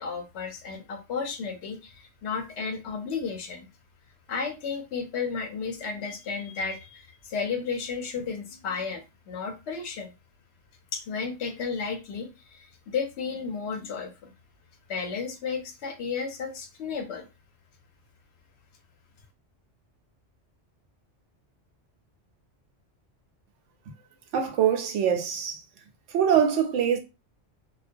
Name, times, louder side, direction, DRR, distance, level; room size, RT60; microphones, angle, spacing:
voice 1, 0.0-3.7 4.3-10.1 10.9-14.3 14.9-17.3, left 5 dB, 70° left, 0.8 m, -33 dB
voice 2, 24.3-25.6 26.1-27.0, right 8 dB, 85° right, 0.9 m, -23 dB
2.3 x 2.2 x 2.5 m
omnidirectional pair, 1.2 m